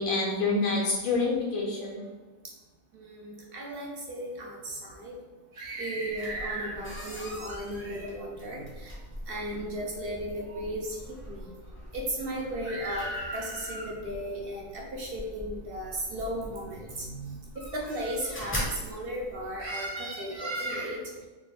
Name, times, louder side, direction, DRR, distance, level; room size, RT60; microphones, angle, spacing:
voice 1, 0.0-2.0, left 3 dB, 85° left, -3 dB, 1.2 m, -27 dB
voice 2, 2.9-5.1 5.6-8.9 9.3-11.0 11.3-11.4 11.9-17.4 17.7-18.5 18.8-21.0, right 1 dB, 60° right, -1 dB, 0.6 m, -35 dB
sound 1, 6.1-19.7, equal, 15° left, 0.5 m, -42 dB
3.4 x 2.2 x 4.0 m, 1.3 s
omnidirectional pair, 1.4 m